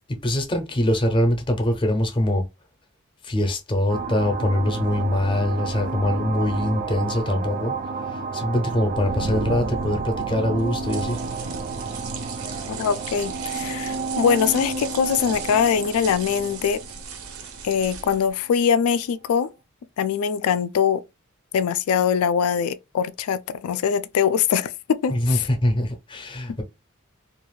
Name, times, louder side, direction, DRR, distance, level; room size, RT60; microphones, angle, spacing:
voice 1, 0.2-2.4 3.2-7.7 8.1-11.2 25.1-26.6, left 1 dB, 25° left, 0.5 m, -23 dB
sound 1, 3.9-18.0, right 4 dB, 40° right, 0.3 m, -31 dB
sound 2, 10.6-18.4, right 6 dB, 85° right, 0.6 m, -38 dB
voice 2, 12.7-16.8 17.6-19.5 20.0-21.0 21.5-25.4, left 7 dB, 85° left, 0.3 m, -22 dB
2.4 x 2.3 x 3.1 m
head